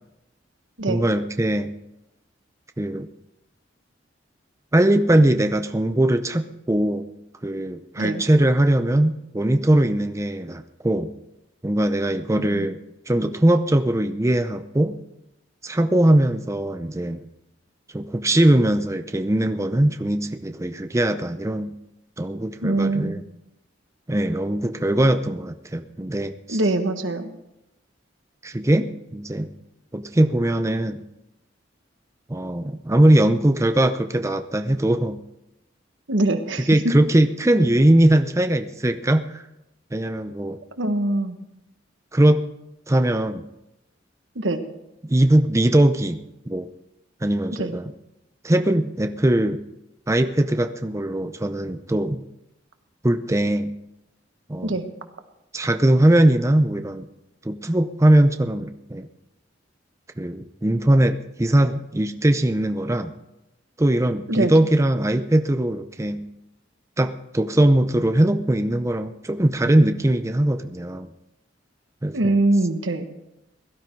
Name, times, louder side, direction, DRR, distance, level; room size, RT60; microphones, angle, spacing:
voice 1, 0.9-1.7 2.8-3.1 4.7-7.1 7.4-11.1 11.6-12.8 13.1-15.0 15.6-17.3 17.9-21.7 22.2-23.2 24.1-26.6 28.4-29.5 29.9-31.0 32.3-35.2 36.7-39.4 39.9-40.6 42.1-42.5 42.9-43.5 45.0-46.7 47.2-47.9 48.4-49.6 50.1-52.2 53.0-53.7 54.5-54.8 55.5-57.1 57.4-59.1 60.2-63.1 63.8-66.2 67.0-71.1 72.0-72.4, right 1 dB, 15° right, 8 dB, 0.6 m, -20 dB
voice 2, 12.4-12.7 22.6-23.2 26.5-27.3 36.1-36.8 40.8-41.4 44.3-44.6 47.5-47.7 54.6-54.9 64.3-64.5 72.1-73.1, right 2 dB, 90° right, 7 dB, 1.4 m, -23 dB
17.0 x 12.5 x 4.6 m, 0.90 s
head